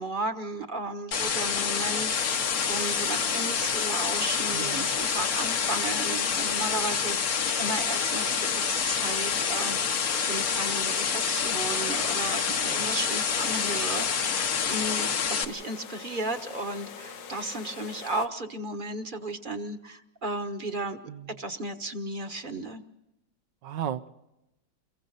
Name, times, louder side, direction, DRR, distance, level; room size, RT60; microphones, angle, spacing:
voice 1, 0.0-21.0 21.4-22.8, right 2 dB, 30° right, 7 dB, 1.4 m, -34 dB
sound 1, 1.1-15.4, left 6 dB, 55° left, 1.5 m, -27 dB
sound 2, 2.1-18.3, left 6 dB, 90° left, 1.8 m, -42 dB
voice 2, 4.5-5.0 12.5-12.9 21.1-21.4 23.6-24.1, right 9 dB, 85° right, 9 dB, 1.6 m, -36 dB
29.5 x 22.5 x 4.1 m, 0.89 s
omnidirectional pair, 1.9 m